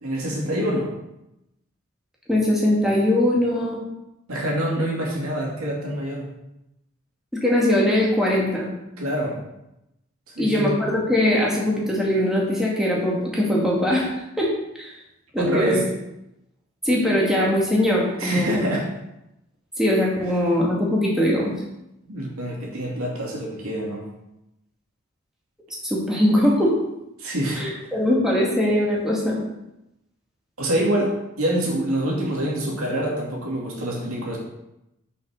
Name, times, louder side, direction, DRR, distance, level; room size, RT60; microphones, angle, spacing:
voice 1, 0.0-0.9 4.3-6.3 9.0-9.4 10.4-10.7 15.4-15.9 18.2-18.9 22.1-24.1 27.2-27.7 30.6-34.4, right 1 dB, 85° right, -2 dB, 2.6 m, -25 dB
voice 2, 2.3-3.8 7.3-8.7 10.4-14.5 14.8-14.9 15.3-15.8 16.8-18.6 19.8-21.5 25.8-26.7 27.6-29.4, left 1 dB, ahead, -4 dB, 2.0 m, -21 dB
6.4 x 6.1 x 6.5 m, 0.88 s
head